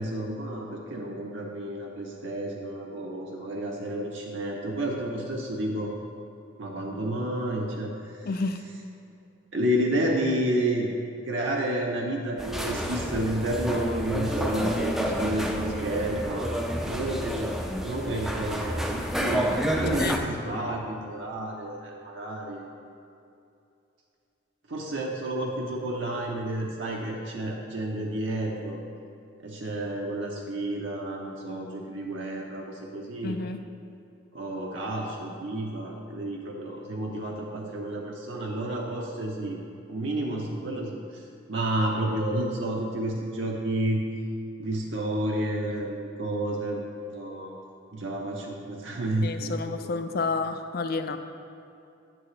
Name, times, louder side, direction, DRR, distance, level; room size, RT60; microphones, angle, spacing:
voice 1, 0.0-5.9 6.6-7.9 9.5-10.9 11.2-16.6 16.9-17.5 17.8-22.6 24.7-28.8 29.4-33.4 34.3-39.6 39.9-41.0 41.5-44.0 44.6-46.8 47.1-47.6 47.9-49.5 49.8-49.9, right 1 dB, 70° right, -1 dB, 0.8 m, -30 dB
voice 2, 8.2-8.6 20.0-20.2 33.2-33.6 49.2-51.2, left 3 dB, 50° left, 8 dB, 0.4 m, -30 dB
sound 1, 12.4-20.2, equal, ahead, 0.4 m, -29 dB
9.0 x 6.9 x 3.2 m, 2.6 s
head